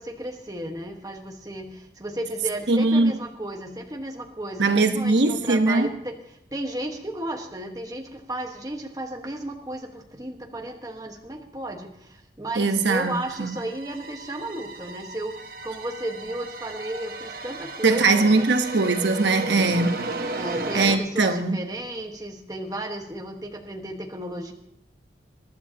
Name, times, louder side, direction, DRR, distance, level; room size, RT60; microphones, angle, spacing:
voice 1, 0.0-6.2 6.5-18.5 20.4-24.5, right 1 dB, 20° right, 1.3 m, -34 dB
voice 2, 2.7-3.1 4.6-5.9 12.6-13.6 17.8-20.0 20.7-21.6, right 3 dB, 80° right, 1.1 m, -21 dB
sound 1, 12.8-21.0, right 2 dB, 50° right, 0.9 m, -34 dB
22.0 x 11.5 x 2.9 m
head